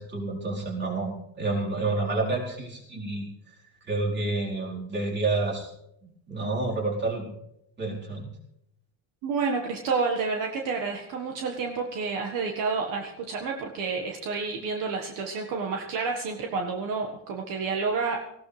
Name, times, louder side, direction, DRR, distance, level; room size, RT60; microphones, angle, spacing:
voice 1, 0.0-3.3 3.9-5.7 6.0-7.3 7.8-8.3, right 3 dB, 30° right, -3 dB, 4.4 m, -29 dB
voice 2, 9.2-18.2, right 4 dB, 60° right, 2 dB, 1.7 m, -29 dB
18.5 x 16.5 x 3.4 m, 0.79 s
cardioid pair, 155°, 37 cm